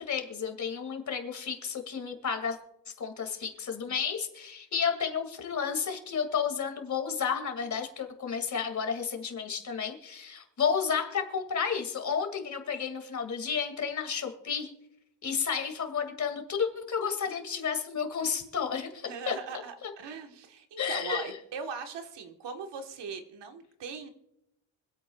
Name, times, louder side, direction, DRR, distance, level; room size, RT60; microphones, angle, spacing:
voice 1, 0.0-2.6 2.9-14.7 15.2-19.4 19.8-19.9 20.8-21.4, left 6 dB, 40° left, 5 dB, 2.3 m, -32 dB
voice 2, 19.1-24.1, right 5 dB, 70° right, 5 dB, 1.5 m, -40 dB
25.5 x 8.6 x 2.4 m, 0.82 s
cardioid pair, 120°, 43 cm